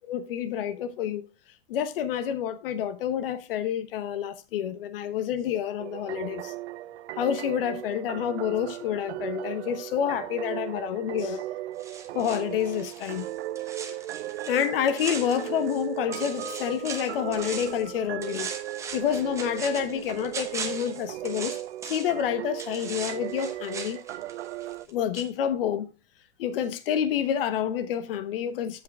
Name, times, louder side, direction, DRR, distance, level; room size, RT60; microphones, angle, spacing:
voice 1, 0.1-1.3 1.7-6.5 7.2-11.4 12.1-13.3 13.9-14.0 14.5-18.6 18.9-21.6 21.8-24.0 24.9-25.9 26.4-28.8, left 9 dB, 55° left, 1.1 m, -28 dB
sound 1, 5.8-24.9, right 14 dB, 75° right, 0.6 m, -37 dB
sound 2, 11.8-15.8 16.1-17.9 18.2-22.2 22.6-24.9 25.2-25.3, right 6 dB, 10° right, 0.9 m, -39 dB
8.5 x 7.8 x 3.5 m
supercardioid pair, 170°, 34 cm